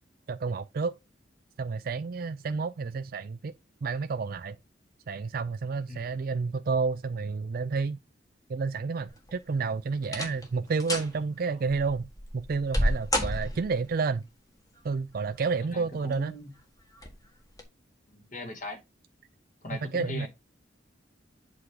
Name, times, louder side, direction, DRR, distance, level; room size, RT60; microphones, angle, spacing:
voice 1, 0.3-1.0 1.6-3.5 3.8-4.6 5.1-8.0 8.5-12.1 12.3-14.3 14.8-16.3 19.9-20.3, right 4 dB, 50° right, 0.4 m, -30 dB
sound 1, 9.1-9.5 10.0-10.5 10.8-11.1 11.7-13.9 15.1-15.7 16.1-16.2 17.0-17.2 17.5-17.6, equal, 20° left, 1.5 m, -30 dB
voice 2, 15.7-16.5 18.1-18.8 19.6-20.3, left 2 dB, 45° left, 2.0 m, -39 dB
8.0 x 3.6 x 4.8 m
head